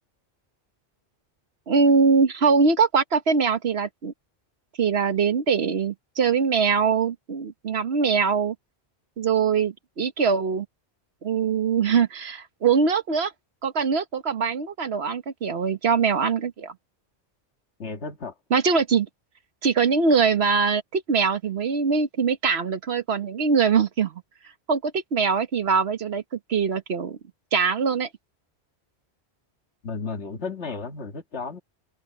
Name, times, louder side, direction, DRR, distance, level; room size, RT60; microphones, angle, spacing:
voice 1, 1.7-4.1 4.8-8.5 9.2-10.7 11.2-13.3 13.6-16.7 18.5-19.1 19.6-24.2 24.7-27.2 27.5-28.1, right 5 dB, 65° right, 1.5 m, -22 dB
voice 2, 17.8-18.3 29.8-31.6, left 4 dB, 80° left, 2.1 m, -33 dB
omnidirectional pair, 1.1 m